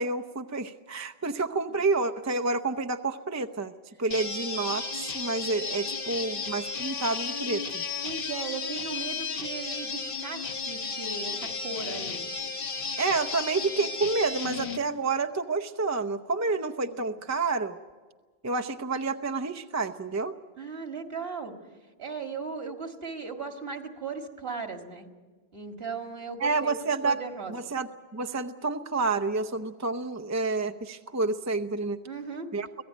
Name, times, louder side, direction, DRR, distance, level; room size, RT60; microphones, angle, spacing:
voice 1, 0.0-3.7 4.0-7.8 13.0-17.8 18.4-20.3 26.4-27.2 27.5-32.0 32.5-32.7, right 3 dB, 20° right, 8 dB, 0.6 m, -29 dB
sound 1, 4.1-14.8, left 4 dB, 60° left, 1.2 m, -34 dB
voice 2, 8.0-12.2 16.9-17.0 20.6-21.5 22.0-25.1 25.5-27.5 32.1-32.5, right 5 dB, 65° right, 4 dB, 2.1 m, -37 dB
25.0 x 16.5 x 9.2 m, 1.4 s
omnidirectional pair, 1.1 m